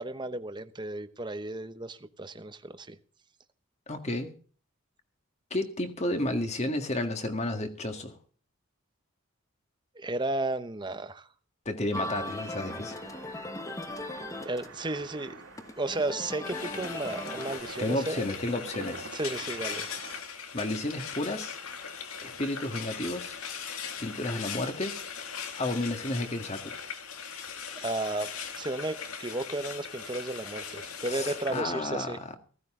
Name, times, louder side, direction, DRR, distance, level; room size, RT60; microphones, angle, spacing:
voice 1, 0.0-2.9 10.0-11.3 14.4-15.4 15.8-18.3 19.1-19.9 27.7-28.3 28.6-32.2, right 2 dB, 20° right, 0.9 m, -33 dB
voice 2, 3.9-4.3 5.5-8.2 11.7-12.9 17.8-19.1 20.5-21.6 22.2-23.4 24.0-25.0 25.5-26.7 31.0-32.3, left 1 dB, 30° left, 1.8 m, -32 dB
sound 1, 11.9-17.6, left 1 dB, 15° left, 1.2 m, -39 dB
sound 2, 12.3-20.2, right 4 dB, 70° right, 2.6 m, -47 dB
Frying (food), 16.4-31.6, left 6 dB, 85° left, 2.1 m, -40 dB
15.5 x 15.0 x 3.7 m
head